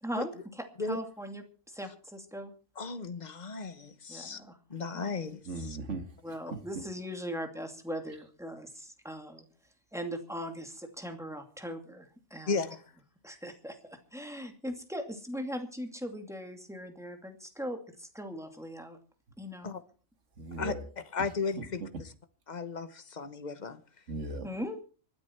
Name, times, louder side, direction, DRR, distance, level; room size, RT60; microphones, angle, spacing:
voice 1, 0.0-2.5 4.1-4.6 4.9-5.1 6.2-9.5 9.9-12.6 13.2-19.0 19.4-19.8 24.4-24.8, equal, ahead, 2.4 m, -40 dB
voice 2, 2.8-4.4 4.7-5.5 12.5-12.8 19.6-19.8 20.6-20.7 21.1-21.8 22.5-23.8, left 4 dB, 35° left, 1.2 m, -35 dB
voice 3, 5.4-6.8 20.4-20.9 21.6-21.9 24.1-24.5, right 2 dB, 60° right, 2.2 m, -38 dB
25.5 x 9.7 x 4.5 m
omnidirectional pair, 1.4 m